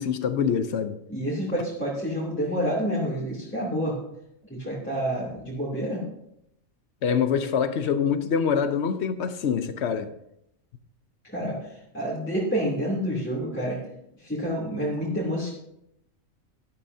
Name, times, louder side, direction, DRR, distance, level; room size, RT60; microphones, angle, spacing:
voice 1, 0.0-1.0 7.0-10.1, left 7 dB, 60° left, 1.0 m, -25 dB
voice 2, 1.1-4.0 4.5-6.0 11.2-13.8 14.2-15.5, equal, 10° left, 2.7 m, -28 dB
12.0 x 12.0 x 2.7 m
omnidirectional pair, 1.3 m